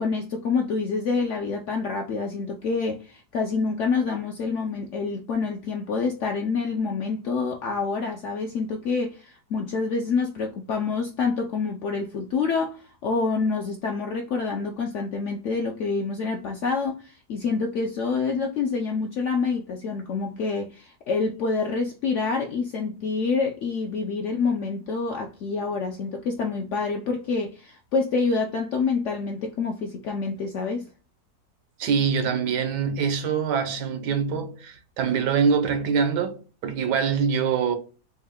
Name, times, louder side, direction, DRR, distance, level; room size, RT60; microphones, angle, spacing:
voice 1, 0.0-30.9, left 4 dB, 75° left, 0.7 m, -27 dB
voice 2, 31.8-37.7, right 6 dB, 90° right, 1.4 m, -24 dB
4.3 x 2.2 x 3.5 m
omnidirectional pair, 1.8 m